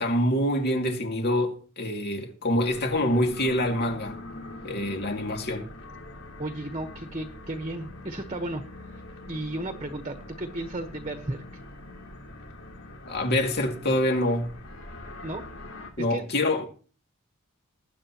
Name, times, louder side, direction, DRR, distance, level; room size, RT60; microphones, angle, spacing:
voice 1, 0.0-4.2 4.6-5.7 13.1-14.5 16.0-16.7, left 1 dB, 50° left, 2.4 m, -26 dB
sound 1, 2.6-15.9, left 1 dB, 80° left, 3.3 m, -43 dB
voice 2, 6.4-8.6 9.3-11.4 15.2-15.4 16.1-16.3, right 1 dB, 30° right, 1.2 m, -34 dB
20.0 x 10.0 x 3.0 m
head